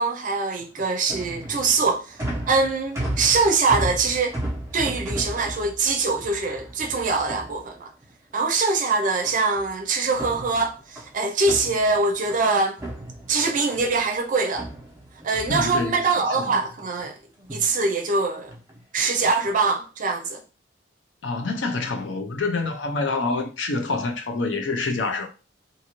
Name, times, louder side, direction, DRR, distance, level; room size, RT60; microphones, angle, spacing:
voice 1, 0.0-2.2 2.5-4.4 4.7-7.9 8.3-12.8 13.3-14.7 15.2-17.2 17.5-18.5 18.9-20.4, right 3 dB, 45° right, 0.5 m, -23 dB
sound 1, 0.6-8.1 9.2-9.7 10.0-12.5 12.8-14.0 14.5-16.2 16.6-17.1 17.4-17.7 18.5-18.8 19.4-19.7, right 1 dB, 15° right, 0.9 m, -34 dB
voice 2, 15.5-16.0 16.3-16.6 21.2-25.3, left 3 dB, 70° left, 0.6 m, -27 dB
2.6 x 2.6 x 2.9 m
head